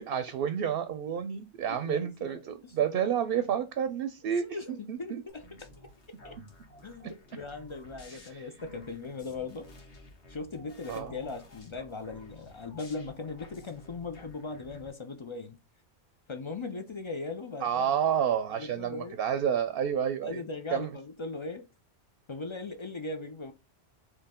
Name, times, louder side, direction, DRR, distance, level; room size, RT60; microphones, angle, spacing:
voice 1, 0.0-4.6 4.9-5.2 8.3-8.5 10.9-11.1 17.6-20.4 20.7-20.9, right 8 dB, 65° right, 0.7 m, -30 dB
voice 2, 1.7-2.7 4.4-5.9 6.2-6.4 6.8-9.7 10.3-15.6 16.3-17.9 18.6-19.2 20.2-21.7 22.3-23.5, left 3 dB, 45° left, 0.4 m, -39 dB
sound 1, 5.3-14.9, left 1 dB, 90° left, 1.6 m, -53 dB
4.5 x 3.0 x 3.6 m
omnidirectional pair, 1.1 m